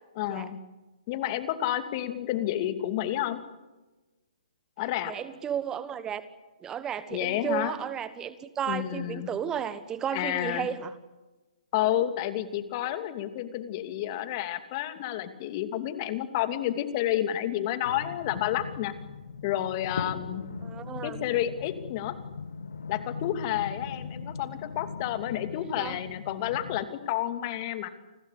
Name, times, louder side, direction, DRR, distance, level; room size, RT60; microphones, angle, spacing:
voice 1, 0.2-0.6 1.1-3.4 4.8-5.1 7.1-7.8 8.7-9.3 10.1-10.7 11.7-18.9 19.4-20.4 21.0-22.2 22.9-27.9, left 12 dB, 40° left, 10 dB, 2.6 m, -30 dB
voice 2, 5.1-6.2 6.6-10.9 20.6-21.2 25.5-26.0, right 8 dB, 15° right, 13 dB, 1.3 m, -33 dB
sound 1, 17.8-26.8, left 5 dB, 75° left, 2.2 m, -39 dB
29.5 x 21.0 x 8.5 m, 1.1 s
figure-of-eight pair, 130°, 4 cm